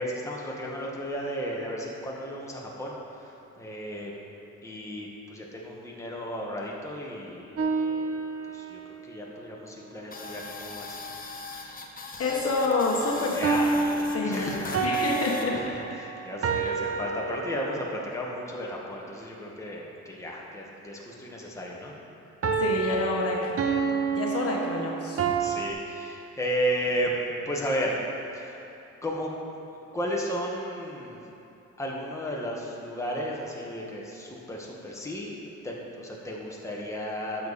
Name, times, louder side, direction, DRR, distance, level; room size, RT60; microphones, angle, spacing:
voice 1, 0.0-4.1 4.6-7.6 7.9-8.2 8.5-8.8 9.1-11.0 13.3-13.7 14.2-15.0 15.7-21.9 25.4-28.0 28.3-28.6 29.0-29.3 29.7-31.2 31.8-35.4 35.6-37.5, equal, 10° left, -3 dB, 1.7 m, -34 dB
sound 1, 7.6-8.9 13.4-18.0 22.4-25.7, right 5 dB, 50° right, 0.9 m, -29 dB
sound 2, 10.1-15.5, left 3 dB, 30° left, 1.1 m, -40 dB
voice 2, 12.2-13.4 13.9-14.5 14.8-15.5 16.6-16.7 22.6-23.6 23.9-25.2, left 3 dB, 50° left, -2 dB, 1.4 m, -28 dB
12.0 x 7.2 x 4.3 m, 2.8 s
cardioid pair, 90°, 30 cm